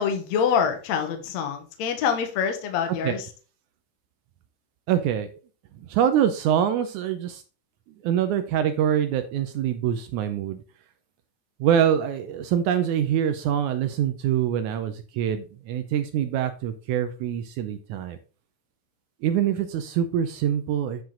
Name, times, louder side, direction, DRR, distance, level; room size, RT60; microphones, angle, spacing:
voice 1, 0.0-3.3, left 7 dB, 65° left, 6 dB, 2.2 m, -25 dB
voice 2, 4.9-5.3 5.9-7.4 8.0-10.6 11.6-18.2 19.2-21.0, right 9 dB, 80° right, 9 dB, 1.9 m, -24 dB
9.4 x 4.8 x 3.7 m, 0.36 s
omnidirectional pair, 3.8 m